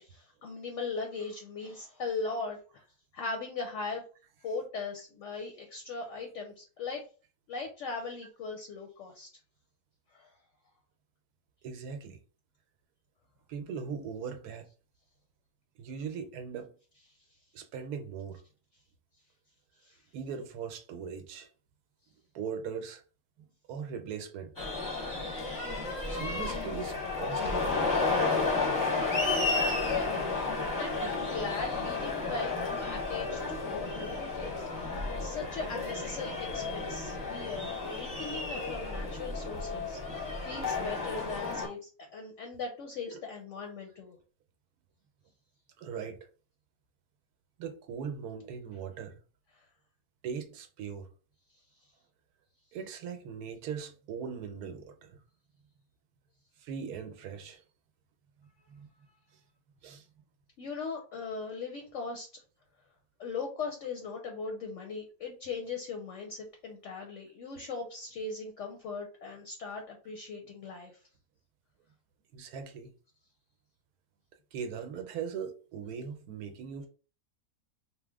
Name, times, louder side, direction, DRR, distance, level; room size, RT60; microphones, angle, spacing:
voice 1, 0.0-2.8 3.1-4.0 4.4-7.0 7.5-9.3 10.1-10.3 19.8-20.0 30.8-44.2 60.6-62.3 63.2-70.9, left 4 dB, 65° left, 0.8 m, -39 dB
voice 2, 11.6-12.2 13.5-14.7 15.8-16.7 17.5-18.4 20.1-21.5 22.3-23.0 23.4-24.5 26.1-27.9 43.1-43.2 45.8-46.2 47.6-49.1 50.2-51.1 52.7-55.2 56.6-57.6 58.7-58.9 59.8-60.0 72.3-72.9 74.5-76.9, right 6 dB, 85° right, 1.2 m, -40 dB
sound 1, 24.6-41.7, left 3 dB, 15° left, 0.7 m, -32 dB
3.1 x 2.0 x 3.4 m
omnidirectional pair, 1.6 m